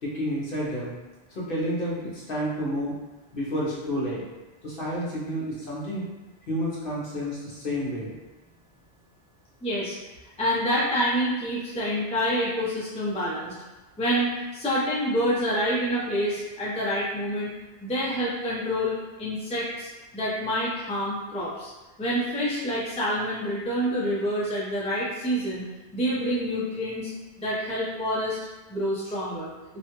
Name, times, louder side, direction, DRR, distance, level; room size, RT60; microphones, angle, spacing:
voice 1, 0.0-0.9 1.3-2.9 3.3-4.2 4.6-6.0 6.5-8.1, equal, 55° left, -6 dB, 0.9 m, -30 dB
voice 2, 9.6-10.0 10.4-13.5 14.0-17.5 17.8-21.7 22.0-25.6 25.9-27.1 27.4-28.4 28.7-29.5, equal, 10° left, -8 dB, 0.5 m, -27 dB
3.0 x 2.3 x 2.9 m, 1.1 s
omnidirectional pair, 1.2 m